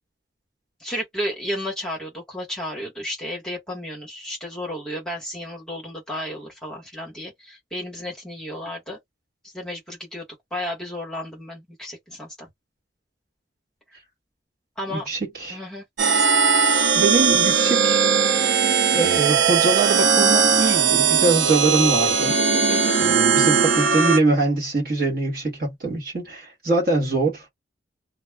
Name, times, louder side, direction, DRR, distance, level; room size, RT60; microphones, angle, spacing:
voice 1, 0.8-9.0 9.5-10.2 10.5-12.5 14.8-15.0 15.5-15.8 17.1-17.3 22.7-23.0, equal, 5° left, 1.0 m, -33 dB
voice 2, 14.9-15.6 16.9-18.0 18.9-22.4 23.0-27.5, right 3 dB, 50° right, 1.2 m, -23 dB
sound 1, 16.0-24.2, right 6 dB, 80° right, 0.5 m, -19 dB
2.3 x 2.0 x 3.3 m
head